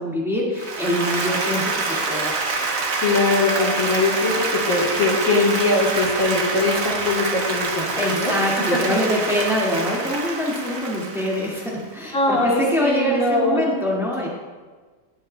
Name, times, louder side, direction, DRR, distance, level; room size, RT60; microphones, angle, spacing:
voice 1, 0.0-2.4 8.0-14.3, equal, ahead, -5 dB, 1.9 m, -24 dB
Applause, 0.6-11.9, right 3 dB, 55° right, 1.4 m, -26 dB
voice 2, 3.0-8.4 9.1-9.2 12.1-13.6, left 2 dB, 55° left, -3 dB, 1.7 m, -21 dB
17.5 x 7.7 x 2.3 m, 1.4 s
omnidirectional pair, 1.8 m